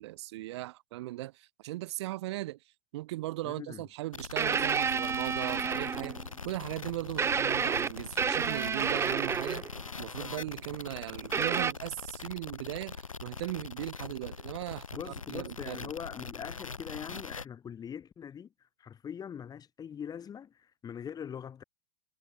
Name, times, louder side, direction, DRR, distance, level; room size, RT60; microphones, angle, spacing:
voice 1, 0.0-2.6 2.9-9.6 10.0-15.9, right 17 dB, 55° right, 1.3 m, -38 dB
voice 2, 3.4-3.8 14.9-18.5 18.8-21.6, left 8 dB, 25° left, 2.6 m, -42 dB
sound 1, 4.1-17.4, left 4 dB, 80° left, 4.8 m, -42 dB
sound 2, 4.4-6.3 7.2-9.8 11.3-11.7, right 6 dB, 15° right, 0.9 m, -29 dB
figure-of-eight pair, 90°, 17 cm